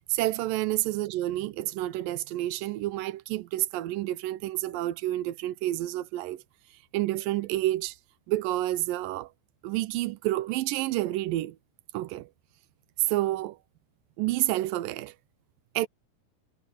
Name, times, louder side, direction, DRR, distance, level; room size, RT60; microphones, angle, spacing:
voice 1, 0.1-6.4 6.9-8.0 8.3-9.3 9.6-11.6 11.9-12.3 13.1-13.6 14.2-15.2 15.8-15.9, right 16 dB, 85° right, 2.5 m, -29 dB
omnidirectional pair, 3.9 m